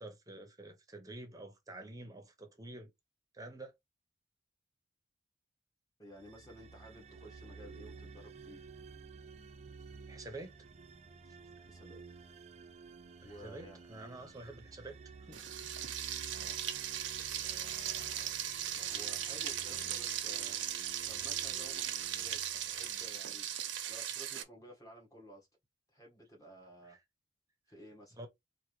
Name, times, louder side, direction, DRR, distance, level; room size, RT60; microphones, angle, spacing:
voice 1, 0.0-2.9 3.3-3.7 10.1-10.5 13.2-15.0 15.3-15.4 26.9-27.0 28.2-28.3, right 2 dB, 20° right, 0.9 m, -48 dB
voice 2, 6.0-8.6 11.6-12.0 13.2-13.8 16.3-16.6 17.4-20.6 21.1-22.4 22.6-23.5 23.9-25.5 25.9-27.0 27.7-28.2, equal, 20° left, 1.5 m, -54 dB
sound 1, 6.1-23.3, right 4 dB, 40° right, 0.5 m, -53 dB
Frying (food), 15.3-24.4, right 10 dB, 85° right, 0.8 m, -38 dB
4.5 x 2.7 x 3.2 m
head